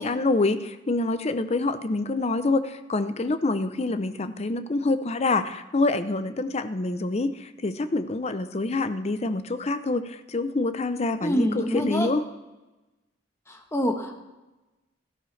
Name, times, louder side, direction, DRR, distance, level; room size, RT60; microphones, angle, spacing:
voice 1, 0.0-12.2, left 2 dB, 35° left, 11 dB, 0.5 m, -26 dB
voice 2, 11.2-12.1 13.5-14.2, equal, 15° left, 3 dB, 1.2 m, -26 dB
13.5 x 12.0 x 3.2 m, 1.1 s
head